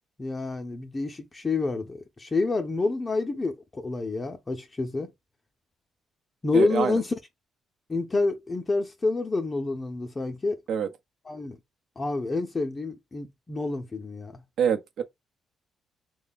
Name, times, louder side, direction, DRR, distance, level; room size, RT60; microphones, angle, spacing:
voice 1, 0.2-5.1 6.4-7.1 7.9-10.6 11.3-11.6 12.0-14.4, left 3 dB, 25° left, 0.6 m, -28 dB
voice 2, 6.5-7.0 10.7-10.9 14.6-15.0, right 7 dB, 70° right, 0.7 m, -25 dB
3.3 x 2.2 x 3.9 m
cardioid pair, 90°, 0 cm